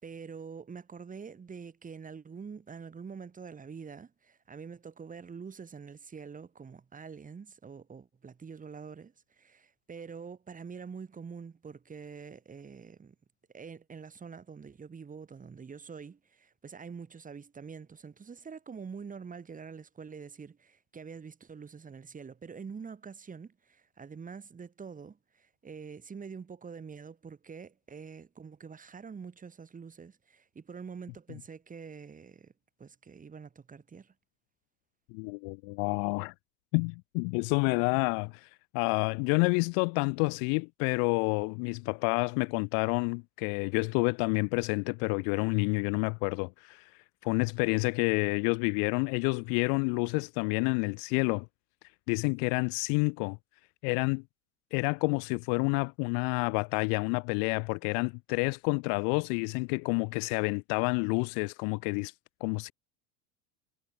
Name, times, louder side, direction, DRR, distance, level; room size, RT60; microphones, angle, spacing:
voice 1, 0.0-13.2 13.5-32.5 32.8-34.1, right 6 dB, 20° right, 7.1 m, -45 dB
voice 2, 35.1-36.3 36.7-38.5 38.7-46.9 47.2-51.5 52.1-53.4 53.8-54.2 54.7-62.1 62.4-62.7, left 40 dB or more, 60° left, 0.7 m, -29 dB
supercardioid pair, 140°, 41 cm